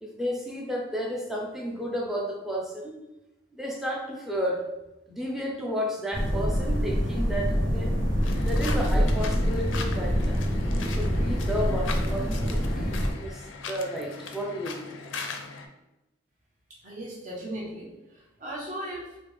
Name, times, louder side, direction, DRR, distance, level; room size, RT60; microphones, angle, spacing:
voice 1, 0.0-3.0 3.6-4.6 5.1-7.9 8.4-10.4 10.7-14.8, equal, ahead, -1 dB, 0.4 m, -32 dB
sound 1, 6.1-13.1, equal, 85° right, 1.1 m, -26 dB
sound 2, 8.2-15.7, left 5 dB, 85° left, 0.4 m, -39 dB
voice 2, 16.8-19.2, right 1 dB, 40° right, -4 dB, 1.0 m, -37 dB
3.2 x 2.7 x 3.3 m, 0.99 s
head